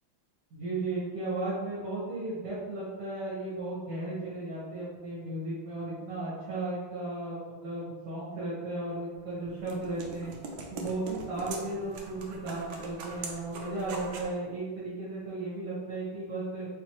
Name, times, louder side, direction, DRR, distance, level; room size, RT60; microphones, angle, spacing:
voice 1, 0.5-10.3 10.7-16.7, right 2 dB, 55° right, -8 dB, 1.6 m, -35 dB
sound 1, 9.1-14.4, right 3 dB, 75° right, 1.2 m, -42 dB
4.4 x 3.0 x 2.9 m, 1.3 s
omnidirectional pair, 2.3 m